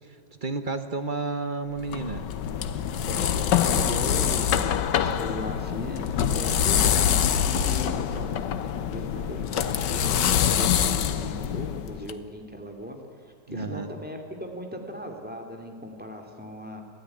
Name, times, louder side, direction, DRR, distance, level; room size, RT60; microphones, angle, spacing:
voice 1, 0.1-2.3 13.5-13.9, right 3 dB, 35° right, 9 dB, 1.1 m, -31 dB
sound 1, 1.8-12.1, left 9 dB, 80° left, 1.6 m, -25 dB
voice 2, 3.1-16.8, equal, 5° right, 2 dB, 2.8 m, -38 dB
25.5 x 16.5 x 9.9 m, 2.6 s
omnidirectional pair, 1.9 m